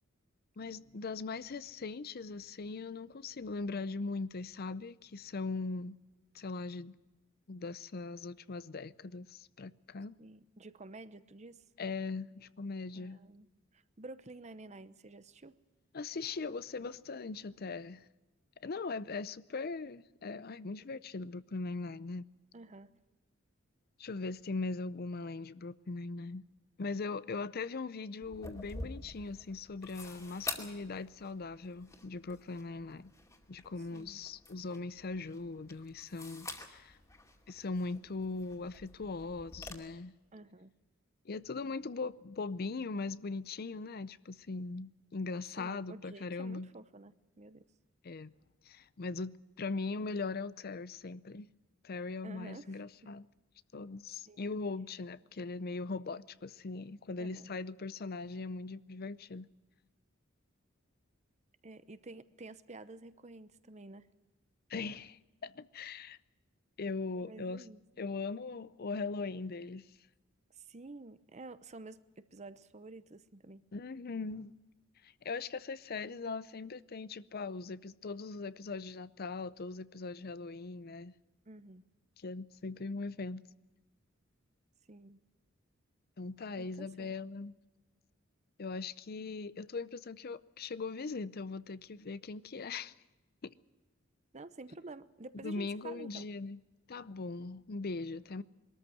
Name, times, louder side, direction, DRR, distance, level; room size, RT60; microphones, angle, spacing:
voice 1, 0.6-6.0 6.3-6.9 7.5-10.2 11.8-13.2 15.9-18.1 18.6-22.3 24.0-26.4 26.8-33.1 33.5-37.0 37.5-40.1 41.2-46.7 48.0-48.3 48.6-51.5 51.8-53.3 53.7-59.5 64.7-66.2 66.8-67.6 68.0-69.9 73.7-74.5 75.0-81.1 82.2-83.4 86.2-87.5 88.6-92.9 93.4-93.5 95.4-96.6 96.9-98.4, left 3 dB, 50° left, 0.6 m, -40 dB
voice 2, 10.2-11.6 12.9-13.5 13.7-15.6 22.5-22.9 33.9-34.2 40.3-40.7 45.6-47.6 52.2-52.8 54.3-54.4 57.2-57.5 61.6-64.1 67.2-67.8 70.5-73.6 81.5-81.8 84.9-85.2 86.6-87.1 94.3-96.3, right 2 dB, 35° right, 0.8 m, -50 dB
sound 1, 28.2-39.7, left 2 dB, 15° left, 2.4 m, -48 dB
22.0 x 13.5 x 9.3 m
head